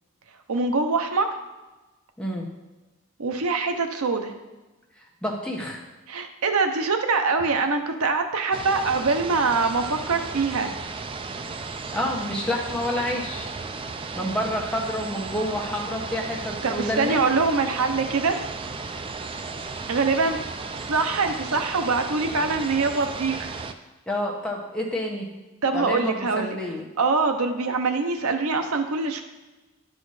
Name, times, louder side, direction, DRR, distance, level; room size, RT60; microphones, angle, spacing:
voice 1, 0.5-1.3 3.2-4.3 6.1-10.7 16.6-18.4 19.9-20.4 20.9-23.5 25.6-26.6 27.0-29.2, right 4 dB, 80° right, 6 dB, 0.7 m, -24 dB
voice 2, 2.2-2.5 5.0-5.8 11.9-13.5 14.1-17.3 24.1-25.3 25.7-26.9, left 1 dB, 5° left, -2 dB, 1.0 m, -29 dB
sound 1, 8.5-23.7, right 4 dB, 25° right, 0.3 m, -35 dB
10.5 x 4.3 x 4.8 m, 1.1 s
head